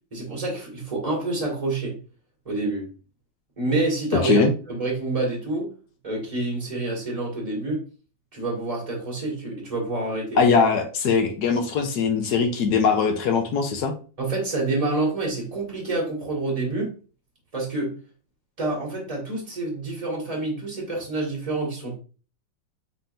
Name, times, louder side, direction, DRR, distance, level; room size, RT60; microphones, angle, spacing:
voice 1, 0.1-2.0 2.4-2.9 3.6-5.7 6.0-7.8 8.3-10.4 14.2-16.9 17.5-17.9 18.6-22.0, right 2 dB, 20° right, -3 dB, 1.6 m, -27 dB
voice 2, 10.4-13.9, left 5 dB, 70° left, 5 dB, 1.0 m, -21 dB
4.2 x 3.8 x 2.5 m, 0.36 s
omnidirectional pair, 2.4 m